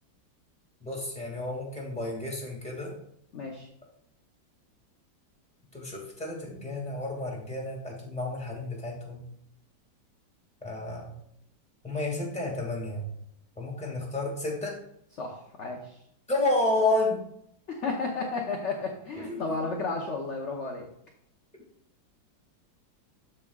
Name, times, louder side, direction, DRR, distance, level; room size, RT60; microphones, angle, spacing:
voice 1, 0.8-2.9 5.7-9.2 10.6-11.1 11.8-13.1 13.6-14.8 16.3-17.2 19.2-19.5, left 2 dB, 5° left, -1 dB, 1.8 m, -31 dB
voice 2, 3.3-3.7 15.2-15.9 17.7-20.9, left 3 dB, 50° left, 0 dB, 0.9 m, -33 dB
13.5 x 4.7 x 2.4 m, 0.73 s
omnidirectional pair, 2.1 m